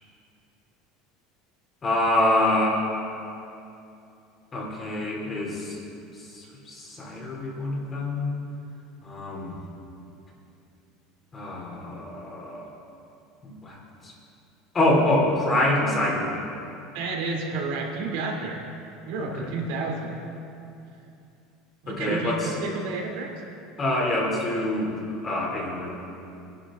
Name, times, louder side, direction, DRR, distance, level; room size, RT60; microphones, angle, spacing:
voice 1, 1.8-2.8 4.5-5.8 6.2-8.3 9.0-9.6 11.3-12.7 13.4-14.1 14.7-16.3 19.2-19.5 21.9-22.5 23.8-24.9 25.2-26.0, left 1 dB, 25° left, -3 dB, 3.1 m, -26 dB
voice 2, 16.9-18.6 19.0-20.2 21.8-23.3, right 3 dB, 75° right, -1 dB, 2.9 m, -30 dB
24.0 x 11.5 x 3.8 m, 2.7 s
cardioid pair, 150°, 0 cm